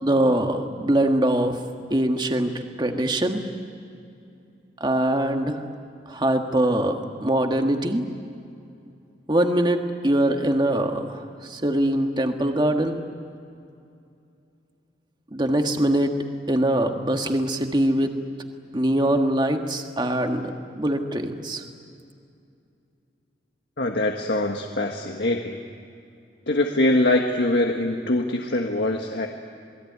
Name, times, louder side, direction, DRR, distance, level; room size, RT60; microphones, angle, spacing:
voice 1, 0.0-1.6 1.9-3.4 4.8-5.6 6.1-8.0 9.3-13.0 15.3-16.1 16.5-18.2 18.7-21.6, right 1 dB, 25° right, 4 dB, 1.7 m, -23 dB
voice 2, 23.8-25.6 26.5-29.3, left 1 dB, 75° left, 2 dB, 1.6 m, -23 dB
28.0 x 21.0 x 9.5 m, 2.5 s
head